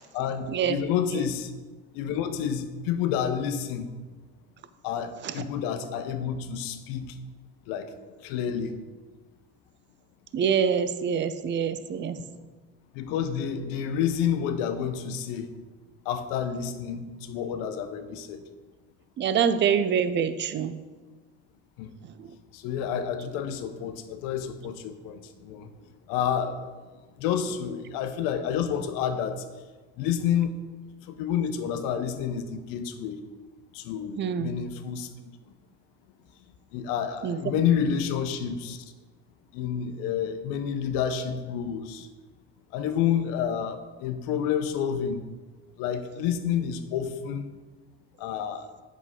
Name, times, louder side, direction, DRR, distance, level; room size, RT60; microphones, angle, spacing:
voice 1, 0.1-1.5 1.9-3.9 4.8-7.1 7.7-7.9 8.2-8.7 12.9-15.5 16.1-18.4 21.8-21.9 22.5-25.7 26.1-26.6 27.2-29.4 30.0-30.5 31.1-33.2 33.7-35.1 36.7-38.8 39.5-42.1 42.7-45.2 45.8-47.5 48.2-48.7, left 8 dB, 75° left, 8 dB, 0.7 m, -29 dB
voice 2, 10.3-12.2 19.2-20.8 22.2-22.3 34.2-34.5 37.2-37.4 37.8-37.9, right 7 dB, 35° right, 12 dB, 0.5 m, -25 dB
8.0 x 6.2 x 3.7 m, 1.3 s
supercardioid pair, 105°, 33 cm